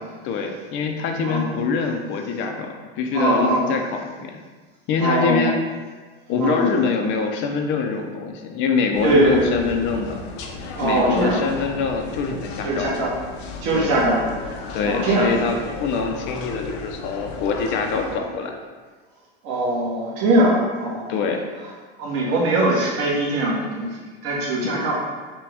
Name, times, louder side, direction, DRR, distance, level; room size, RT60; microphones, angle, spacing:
voice 1, 0.2-4.4 4.9-5.6 6.3-10.2 10.8-12.9 13.7-14.0 14.7-18.5 21.1-21.5 24.6-24.9, left 5 dB, 35° left, 3 dB, 0.5 m, -24 dB
voice 2, 3.1-3.7 5.0-5.5 6.4-6.7 9.0-9.5 10.8-11.4 12.6-13.1 13.6-14.2 14.9-15.3 18.1-18.2 19.4-21.1 22.0-24.0 24.2-25.0, right 1 dB, 50° right, -4 dB, 1.2 m, -21 dB
sound 1, 8.9-18.2, left 3 dB, 90° left, 0.7 m, -34 dB
5.9 x 2.2 x 3.5 m, 1.4 s
supercardioid pair, 150°, 32 cm